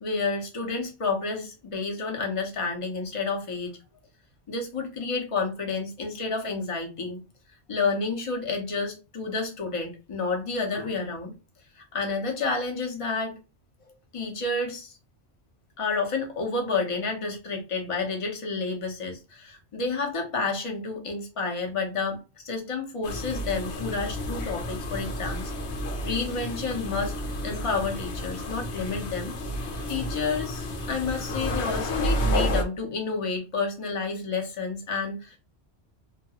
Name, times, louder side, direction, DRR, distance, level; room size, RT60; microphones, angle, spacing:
voice 1, 0.0-3.8 4.5-7.2 7.7-11.3 11.8-13.4 14.1-14.9 15.8-25.7 26.0-27.1 27.4-35.4, left 4 dB, 35° left, 2 dB, 0.8 m, -30 dB
sound 1, 23.0-32.6, equal, 80° left, 0.9 m, -31 dB
2.8 x 2.4 x 2.8 m, 0.29 s
omnidirectional pair, 1.1 m